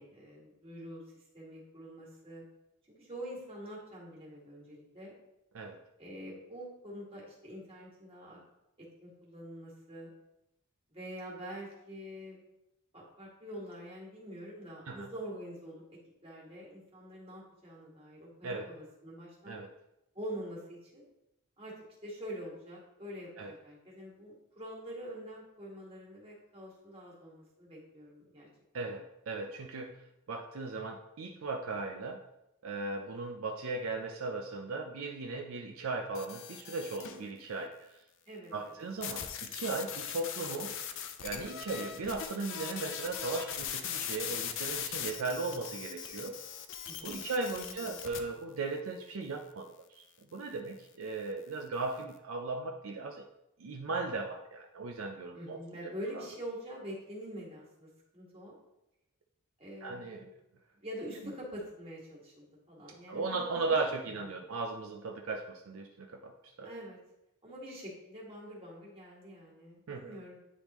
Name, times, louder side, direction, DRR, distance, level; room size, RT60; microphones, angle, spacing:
voice 1, 0.0-2.4 2.9-5.1 6.0-8.4 9.0-10.1 10.9-12.4 12.9-15.8 16.2-19.6 20.1-21.0 21.6-21.7 22.0-28.5 38.3-38.8 46.8-47.2 47.5-48.0 55.3-58.5 59.6-60.3 60.8-63.7 66.6-67.0 67.4-70.3, equal, 25° right, -4 dB, 1.8 m, -45 dB
voice 2, 28.7-30.0 30.3-32.2 32.6-38.0 38.5-40.8 41.2-46.4 47.0-50.0 50.3-53.2 53.6-56.2 59.8-60.3 63.1-66.7 69.9-70.2, right 3 dB, 65° right, 3 dB, 0.5 m, -37 dB
sound 1, 36.1-37.2 39.0-48.2, left 8 dB, 60° left, 0.5 m, -40 dB
9.7 x 3.5 x 3.0 m, 0.88 s
head